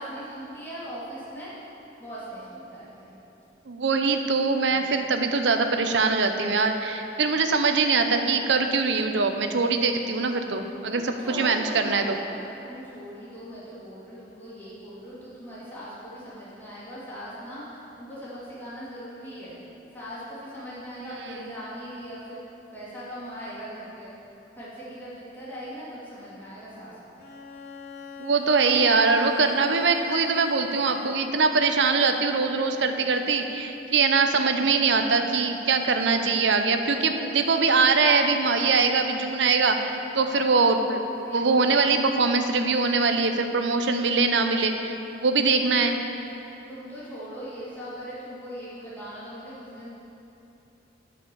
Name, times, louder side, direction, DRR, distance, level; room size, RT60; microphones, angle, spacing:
voice 1, 0.0-1.5 2.0-3.2 4.7-4.8 5.1-5.2 10.9-12.4 12.6-19.6 19.9-22.4 22.7-24.1 24.6-27.2 36.8-37.3 40.1-40.4 41.2-41.8 46.7-49.9, equal, 10° left, -11 dB, 2.5 m, -40 dB
voice 2, 3.7-12.2 28.2-41.1 41.3-46.0, right 4 dB, 75° right, 6 dB, 0.7 m, -23 dB
Bowed string instrument, 27.2-31.6, left 2 dB, 55° left, 0.8 m, -40 dB
10.5 x 5.0 x 6.9 m, 2.9 s
head